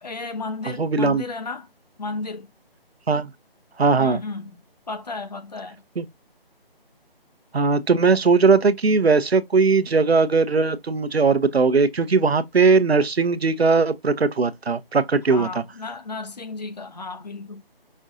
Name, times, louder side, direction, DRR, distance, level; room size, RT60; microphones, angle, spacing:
voice 1, 0.0-1.7 2.0-2.5 4.0-4.6 4.9-5.8 15.3-17.6, left 3 dB, 45° left, 0.7 m, -33 dB
voice 2, 0.7-1.2 3.1-3.3 3.8-4.2 6.0-6.1 7.5-15.6, right 4 dB, 85° right, 0.7 m, -19 dB
5.4 x 2.6 x 3.6 m
figure-of-eight pair, 160°, 30 cm